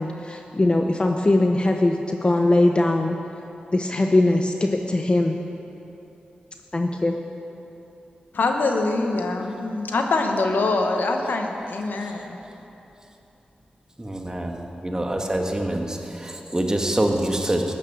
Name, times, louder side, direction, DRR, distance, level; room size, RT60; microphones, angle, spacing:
voice 1, 0.0-3.2 3.7-5.4 6.7-7.1, left 2 dB, 35° left, 3 dB, 0.7 m, -21 dB
voice 2, 8.3-12.4, left 3 dB, 80° left, 3 dB, 1.2 m, -24 dB
voice 3, 14.0-17.6, right 1 dB, 20° right, 2 dB, 1.5 m, -25 dB
14.0 x 9.8 x 6.3 m, 3.0 s
cardioid pair, 60°, 3 cm